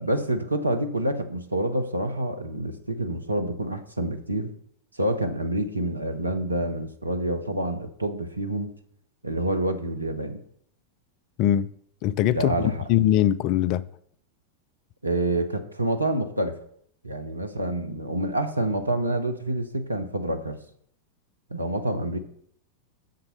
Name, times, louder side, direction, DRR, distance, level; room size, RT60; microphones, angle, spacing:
voice 1, 0.0-4.5 4.9-8.7 9.2-10.4 12.3-12.8 15.0-16.6 17.0-20.6 21.5-22.2, right 1 dB, 85° right, 1.0 m, -27 dB
voice 2, 11.4-11.7 12.0-13.9, left 11 dB, 40° left, 0.4 m, -22 dB
7.1 x 6.5 x 5.5 m
figure-of-eight pair, 90°, 0 cm